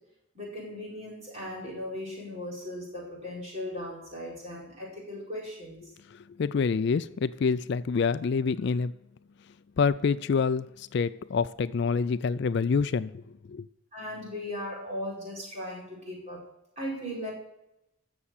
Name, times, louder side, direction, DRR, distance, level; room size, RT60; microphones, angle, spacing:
voice 1, 0.3-5.9 13.9-16.5 16.8-17.3, left 1 dB, 35° right, 4.7 m, -37 dB
voice 2, 6.4-8.9 9.8-13.2 13.5-13.7, left 5 dB, 55° left, 0.3 m, -27 dB
12.5 x 7.1 x 6.6 m
head